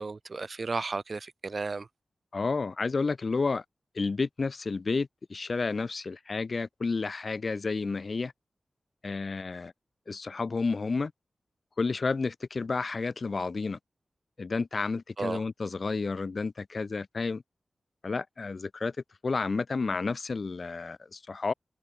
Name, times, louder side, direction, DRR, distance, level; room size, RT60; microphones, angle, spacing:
voice 1, 0.0-1.9 15.2-15.4, right 4 dB, 55° right, 6.2 m, -33 dB
voice 2, 2.3-3.6 4.0-8.3 9.0-9.7 10.1-11.1 11.8-13.8 14.4-17.4 18.0-19.0 19.2-21.5, left 4 dB, 55° left, 3.6 m, -31 dB
wide cardioid pair, 65°, 0 cm